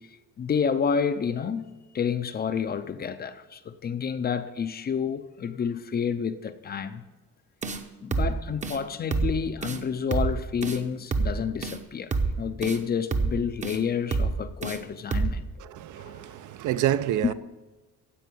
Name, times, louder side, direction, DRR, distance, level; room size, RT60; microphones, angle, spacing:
voice 1, 0.1-1.7 1.9-7.0 8.0-15.5 16.0-16.4 17.2-17.3, left 6 dB, 30° left, 0.5 m, -29 dB
sound 1, 7.6-7.8 8.1-8.3 8.6-8.8 9.1-9.3 9.6-9.8 10.1-10.3 10.6-10.8 11.1-11.3 11.6-11.8 12.1-12.3 12.6-12.8 13.1-13.3 13.6-13.8 14.1-14.3 14.6-14.8 15.1-15.3, right 4 dB, 20° right, 0.8 m, -26 dB
voice 2, 15.6-17.3, right 11 dB, 60° right, 0.6 m, -28 dB
15.5 x 5.5 x 9.3 m
cardioid pair, 175°, 34 cm